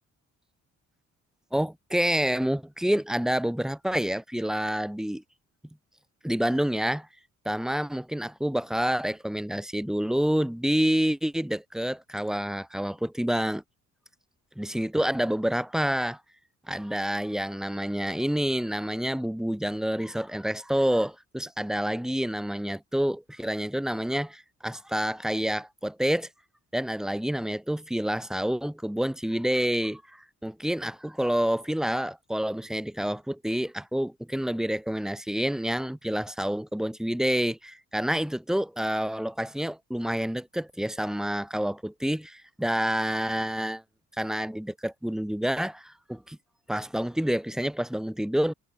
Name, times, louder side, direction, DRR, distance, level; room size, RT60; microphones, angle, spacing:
voice 1, 1.5-5.2 6.2-7.1 7.5-13.6 14.6-16.2 16.7-26.3 26.7-43.8 44.2-46.4 46.7-48.5, equal, ahead, 2.1 m, -28 dB
cardioid pair, 90°, 30 cm